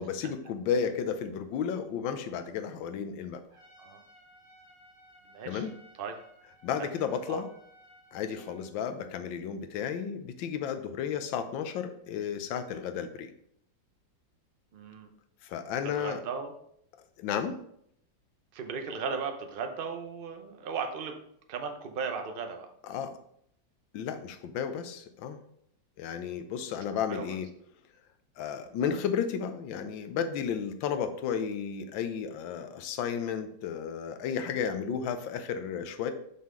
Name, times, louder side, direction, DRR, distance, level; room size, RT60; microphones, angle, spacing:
voice 1, 0.0-3.4 5.5-5.7 6.6-7.5 8.1-13.3 15.4-16.2 17.2-17.6 22.8-23.2 23.9-25.4 26.0-27.5 28.4-36.1, left 7 dB, 90° left, 8 dB, 1.5 m, -33 dB
Trumpet, 3.5-8.7, equal, 65° left, 2.8 m, -58 dB
voice 2, 5.3-5.7 6.0-6.1 6.8-6.9 7.3-7.4 14.7-15.1 15.9-16.5 18.5-21.1 21.5-22.7 27.1-27.4 28.4-28.5, right 5 dB, 60° right, 5 dB, 0.5 m, -36 dB
6.1 x 5.6 x 3.7 m, 0.70 s
omnidirectional pair, 2.0 m